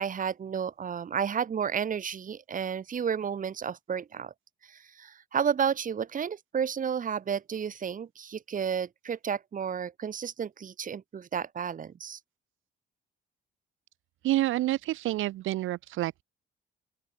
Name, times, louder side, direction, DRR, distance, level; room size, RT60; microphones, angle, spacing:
voice 1, 0.0-4.3 4.7-12.2, right 7 dB, 40° right, 1.3 m, -32 dB
voice 2, 14.2-16.2, right 15 dB, 85° right, 1.8 m, -28 dB
open air
cardioid pair, 90°, 20 cm